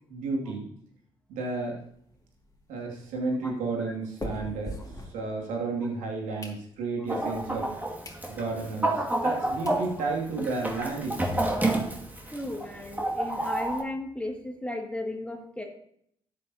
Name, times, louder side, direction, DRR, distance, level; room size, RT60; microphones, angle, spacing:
voice 1, 0.1-0.7 1.3-1.8 2.7-7.7 8.3-11.5, right 3 dB, 75° right, -1 dB, 2.6 m, -32 dB
sound 1, 1.8-5.8 6.1-7.1 7.6-7.7 8.0-8.3 8.7-8.8 9.4-9.5 9.7-9.9 10.3-10.4 10.5-10.7 11.0-11.1 11.4-12.5, left 1 dB, 30° left, 2.3 m, -43 dB
Chicken rooster, 7.1-13.8, right 1 dB, 15° right, 2.3 m, -30 dB
voice 2, 12.3-15.6, left 1 dB, 10° left, 2 dB, 2.2 m, -35 dB
12.5 x 8.5 x 2.9 m, 0.69 s
hypercardioid pair, 50°, 13 cm